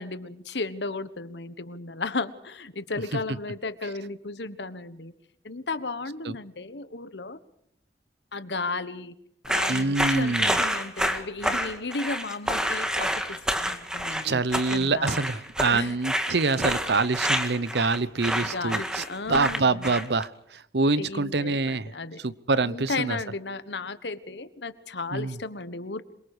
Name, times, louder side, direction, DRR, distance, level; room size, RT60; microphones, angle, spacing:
voice 1, 0.0-5.1 5.4-7.4 8.3-9.1 9.4-15.2 15.7-15.9 18.5-19.9 21.0-22.2 22.6-26.0, left 3 dB, 75° left, 13 dB, 1.3 m, -34 dB
sound 1, 9.4-20.2, equal, 5° right, 1.9 m, -28 dB
voice 2, 9.7-10.6 14.2-21.9 22.2-23.2 25.1-25.4, right 3 dB, 65° right, 17 dB, 0.9 m, -26 dB
27.5 x 23.5 x 5.0 m, 0.73 s
head